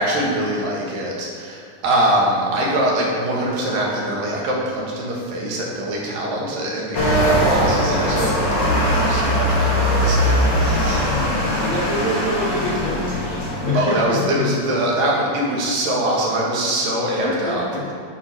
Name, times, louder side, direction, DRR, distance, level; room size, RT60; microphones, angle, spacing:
voice 1, 0.0-11.3 13.7-17.6, right 1 dB, 80° right, -3 dB, 3.3 m, -23 dB
sound 1, 6.9-13.7, equal, 35° left, 2.2 m, -20 dB
voice 2, 11.0-14.5 17.2-17.8, left 2 dB, 70° left, -8 dB, 0.8 m, -25 dB
11.0 x 5.3 x 5.9 m, 2.1 s
omnidirectional pair, 4.0 m